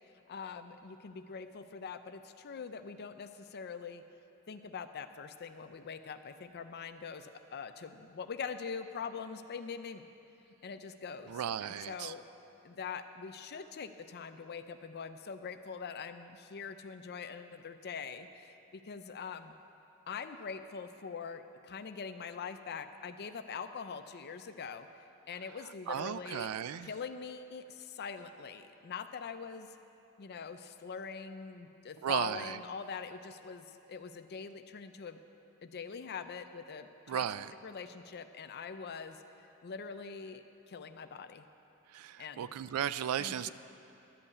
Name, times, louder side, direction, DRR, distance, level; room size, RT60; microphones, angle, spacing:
voice 1, 0.3-4.0 4.5-10.0 10.6-12.2 12.6-19.5 20.1-24.9 25.3-26.6 26.8-29.7 30.2-35.2 35.6-37.2 37.6-39.2 39.6-41.5 42.2-42.5 43.2-43.5, left 6 dB, 50° left, 10 dB, 0.5 m, -43 dB
voice 2, 11.3-12.1 25.9-26.9 32.0-32.6 37.1-37.5 41.9-43.5, right 9 dB, 80° right, 15 dB, 0.3 m, -35 dB
11.5 x 5.5 x 8.3 m, 2.8 s
head